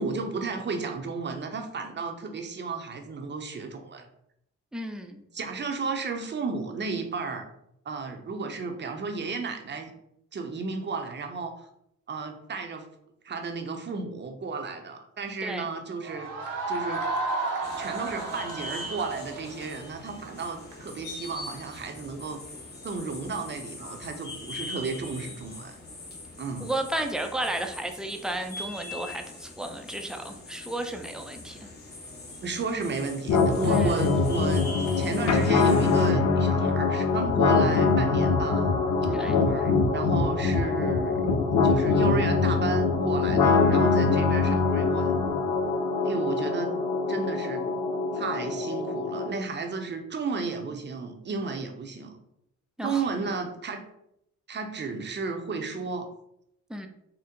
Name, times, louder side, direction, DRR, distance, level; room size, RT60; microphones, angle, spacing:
voice 1, 0.0-4.1 5.3-7.5 7.9-9.9 10.3-11.7 12.1-12.9 13.2-16.3 16.7-17.0 17.8-22.4 22.8-25.8 26.4-26.7 32.4-34.7 35.0-38.7 39.0-41.2 41.6-45.2 46.0-46.7 47.1-47.6 48.1-52.2 52.8-53.8 54.5-56.1, right 4 dB, 35° right, 5 dB, 0.7 m, -33 dB
voice 2, 4.7-5.2 15.4-15.7 26.6-31.7 33.7-33.9 39.1-39.4 52.8-53.0 56.7-56.9, right 1 dB, ahead, 4 dB, 0.5 m, -33 dB
sound 1, 16.0-20.8, right 3 dB, 85° right, 1.0 m, -32 dB
sound 2, 17.6-36.1, left 2 dB, 35° left, 1.0 m, -42 dB
sound 3, 33.3-49.3, left 4 dB, 70° left, 0.7 m, -23 dB
4.4 x 2.1 x 3.8 m, 0.77 s
cardioid pair, 90°, 30 cm